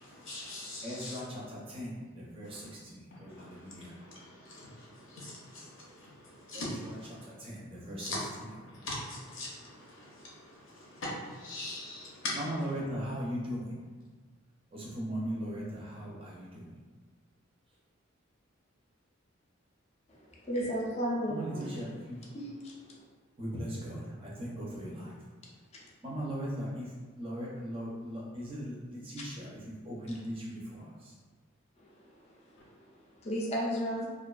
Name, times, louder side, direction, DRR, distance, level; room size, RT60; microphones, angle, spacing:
voice 1, 0.3-1.2 4.5-4.6 5.2-5.3 6.5-6.7 8.0-8.2 8.8-9.5 11.4-12.3, left 2 dB, 70° left, -5 dB, 0.7 m, -39 dB
voice 2, 0.8-3.9 6.5-8.6 12.3-13.8 14.7-16.7 21.3-22.2 23.4-25.1 26.0-26.9 27.2-31.1, equal, 25° right, -5 dB, 0.5 m, -39 dB
voice 3, 20.4-21.8 22.3-22.7 25.7-25.8 33.2-34.1, equal, 30° left, -3 dB, 0.4 m, -33 dB
2.4 x 2.3 x 2.2 m, 1.4 s
head